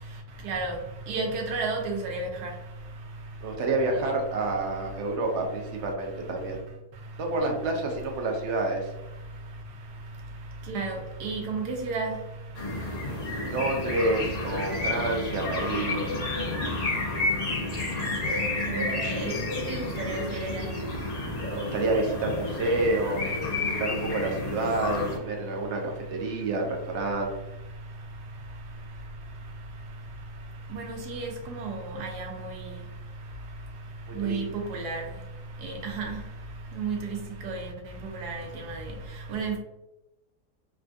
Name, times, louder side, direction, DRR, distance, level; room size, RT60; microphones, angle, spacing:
voice 1, 0.4-0.8 1.1-2.5 10.7-12.1 18.7-19.4 19.7-20.6 30.7-32.5 34.2-34.4 34.7-35.0 35.6-36.2 36.8-37.0 37.4-37.7 38.1-38.8 39.3-39.6, right 3 dB, 85° right, 2 dB, 1.3 m, -32 dB
voice 2, 3.4-6.6 7.2-8.9 13.5-16.1 21.5-25.8 26.1-27.3 34.1-34.4, right 2 dB, 65° right, 2 dB, 0.7 m, -29 dB
sound 1, 12.5-25.2, left 2 dB, 65° left, 0.4 m, -31 dB
3.4 x 2.3 x 2.5 m, 0.93 s
omnidirectional pair, 1.7 m